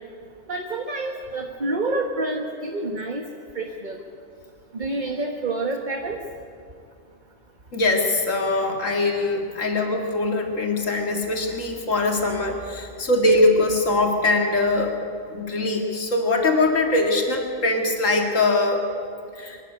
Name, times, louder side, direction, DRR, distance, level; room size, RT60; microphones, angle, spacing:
voice 1, 0.5-3.2 3.5-4.0 4.7-6.2, right 2 dB, 40° right, 2 dB, 1.6 m, -28 dB
voice 2, 7.7-15.0 15.3-18.9 19.4-19.6, left 2 dB, 90° left, 2 dB, 2.5 m, -22 dB
24.0 x 13.5 x 9.7 m, 2.4 s
omnidirectional pair, 1.3 m